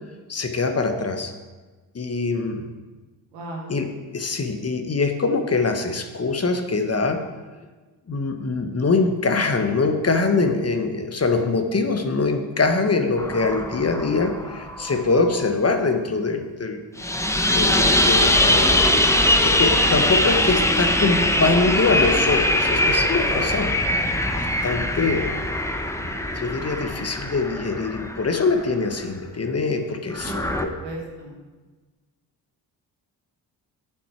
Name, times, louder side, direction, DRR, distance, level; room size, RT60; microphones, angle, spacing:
voice 1, 0.3-1.3 1.9-2.7 3.7-7.2 8.1-16.8 17.2-23.8 24.3-25.3 26.0-26.1 26.3-30.3 30.6-30.7, left 3 dB, 30° left, 6 dB, 1.2 m, -23 dB
voice 2, 3.3-3.8 21.1-21.5 30.2-30.4 30.8-31.3, right 2 dB, 85° right, -1 dB, 1.8 m, -35 dB
sound 1, 13.2-15.4 17.0-28.6 30.1-30.6, left 1 dB, 5° left, 0.9 m, -22 dB
8.4 x 8.4 x 4.4 m, 1.3 s
hypercardioid pair, 40°, 48 cm